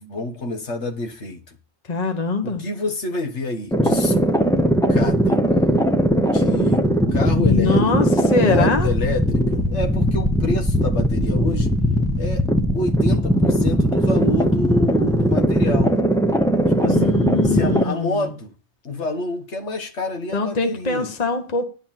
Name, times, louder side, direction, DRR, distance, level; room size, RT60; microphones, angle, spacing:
voice 1, 0.0-1.6 2.4-4.3 4.9-5.4 6.2-6.8 7.1-8.0 8.3-11.7 12.2-12.5 12.7-16.0 16.8-18.5 18.9-21.1, left 2 dB, 75° left, 1.7 m, -28 dB
voice 2, 1.9-2.6 7.4-8.9 16.8-18.3 20.3-21.7, left 4 dB, 35° left, 1.3 m, -23 dB
sound 1, 3.7-17.8, equal, 5° left, 0.7 m, -19 dB
10.5 x 4.4 x 7.4 m
omnidirectional pair, 1.2 m